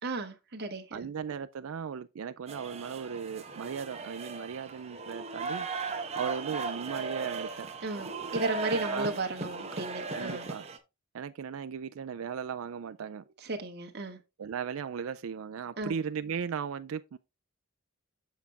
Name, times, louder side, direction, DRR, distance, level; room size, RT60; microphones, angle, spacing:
voice 1, 0.0-1.1 7.8-10.5 13.4-14.2 15.8-15.9, right 2 dB, 50° right, 1.5 m, -34 dB
voice 2, 0.9-5.7 6.1-7.7 8.8-9.1 10.1-10.6 11.1-13.2 14.4-17.2, right 7 dB, 80° right, 0.4 m, -37 dB
sound 1, 2.5-10.8, right 4 dB, 30° right, 1.1 m, -37 dB
7.2 x 6.9 x 3.4 m
head